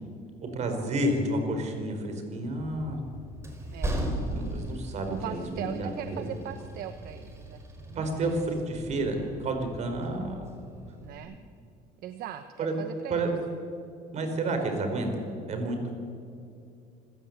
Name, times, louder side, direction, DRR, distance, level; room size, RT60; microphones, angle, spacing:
voice 1, 0.4-3.0 4.3-6.3 7.9-10.4 12.6-12.7 13.1-13.3 14.1-15.1 15.5-15.8, right 2 dB, 45° right, 5 dB, 4.8 m, -30 dB
Train, 2.6-11.2, right 1 dB, 15° right, 4.6 m, -38 dB
voice 2, 5.1-8.3 11.0-11.4 12.0-13.3, right 10 dB, 65° right, 9 dB, 1.1 m, -39 dB
27.5 x 15.5 x 8.2 m, 2.5 s
cardioid pair, 130°, 16 cm